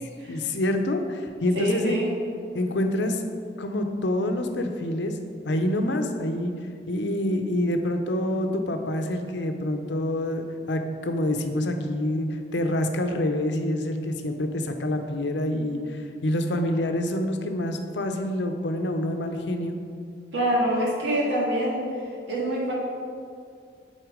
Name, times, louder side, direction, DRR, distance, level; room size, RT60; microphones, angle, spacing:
voice 1, 0.3-2.0 2.5-3.2 3.6-5.2 5.4-6.5 6.9-19.8, left 1 dB, 75° left, 6 dB, 0.6 m, -27 dB
voice 2, 1.6-2.1 20.3-21.8 22.3-22.7, right 1 dB, 80° right, -4 dB, 1.8 m, -25 dB
7.8 x 4.3 x 5.0 m, 2.2 s
head